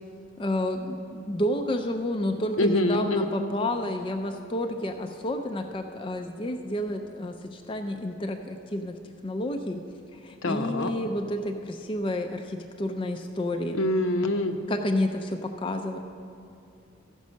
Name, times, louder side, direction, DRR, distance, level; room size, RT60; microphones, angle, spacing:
voice 1, 0.4-9.0 9.2-9.8 10.1-13.9 14.7-16.0, left 1 dB, 25° left, 4 dB, 0.4 m, -30 dB
voice 2, 2.6-3.3 10.4-10.9 13.7-14.6, left 1 dB, 80° left, 6 dB, 0.7 m, -25 dB
14.5 x 5.3 x 6.3 m, 2.6 s
head